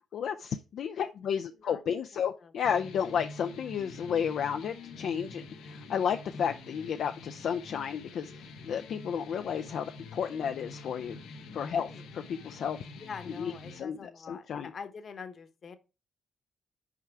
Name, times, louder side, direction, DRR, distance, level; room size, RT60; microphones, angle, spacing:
voice 1, 0.1-11.2 11.5-12.8 13.4-14.7, left 7 dB, 65° left, 0.5 m, -32 dB
voice 2, 2.1-2.5 11.7-12.0 13.0-15.8, left 5 dB, 50° left, 1.1 m, -45 dB
sound 1, 2.6-13.8, left 3 dB, 90° left, 1.1 m, -46 dB
5.7 x 4.8 x 4.5 m
cardioid pair, 90°, 0 cm